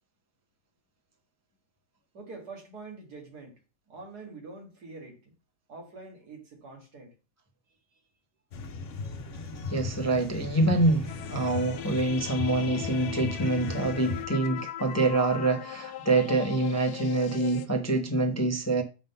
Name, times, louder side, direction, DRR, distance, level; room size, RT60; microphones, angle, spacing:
voice 1, 2.1-3.6 3.9-5.3 5.7-7.1, right 3 dB, 75° right, 2.4 m, -45 dB
sound 1, 8.5-14.3, left 4 dB, 55° left, 1.1 m, -37 dB
voice 2, 9.7-18.8, right 2 dB, 15° left, 0.6 m, -26 dB
sound 2, 11.1-17.7, left 12 dB, 85° left, 1.2 m, -40 dB
7.3 x 3.8 x 5.3 m
omnidirectional pair, 1.7 m